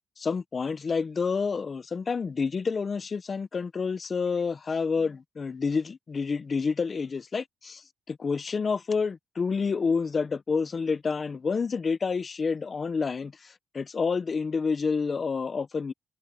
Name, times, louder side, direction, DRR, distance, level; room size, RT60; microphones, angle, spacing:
voice 1, 0.2-7.8 8.1-15.9, left 5 dB, 35° left, 1.0 m, -29 dB
cardioid pair, 90°, 0 cm